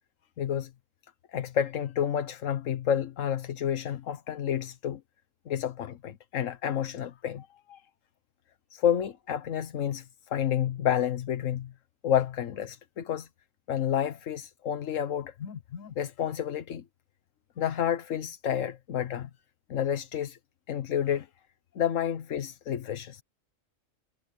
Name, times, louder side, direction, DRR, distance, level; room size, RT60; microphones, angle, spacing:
voice 1, 0.4-0.7 1.3-5.0 5.5-7.8 8.7-11.7 12.0-13.3 13.7-16.8 17.6-19.3 19.7-20.4 20.7-21.3 21.7-23.2, left 9 dB, 80° left, 1.3 m, -30 dB
omnidirectional pair, 1.3 m